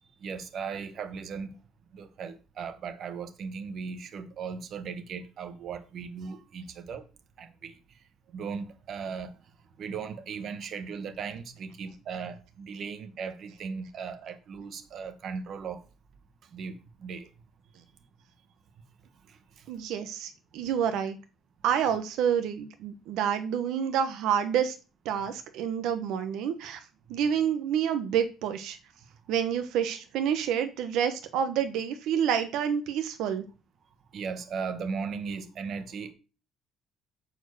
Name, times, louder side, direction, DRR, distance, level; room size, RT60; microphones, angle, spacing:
voice 1, 0.2-1.5 1.9-7.1 7.4-7.8 8.3-9.4 9.8-15.8 16.5-17.3 19.3-19.4 34.1-36.1, right 5 dB, 45° right, 1.1 m, -37 dB
voice 2, 19.7-21.2 21.6-24.7 25.0-26.8 27.1-28.8 29.3-33.4, right 8 dB, 75° right, 1.0 m, -28 dB
9.2 x 4.5 x 6.7 m
cardioid pair, 165°, 0 cm